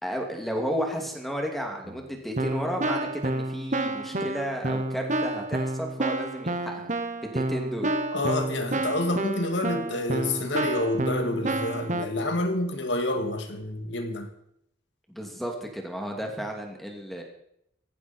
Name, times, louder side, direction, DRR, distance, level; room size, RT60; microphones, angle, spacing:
voice 1, 0.0-6.9 7.2-7.9 15.1-17.2, equal, ahead, 2 dB, 2.6 m, -33 dB
Keyboard (musical), 1.8-2.0 2.4-12.1, right 2 dB, 40° right, 1.3 m, -29 dB
voice 2, 8.1-14.3, left 1 dB, 65° left, 6 dB, 2.3 m, -28 dB
18.0 x 15.0 x 4.5 m, 0.74 s
head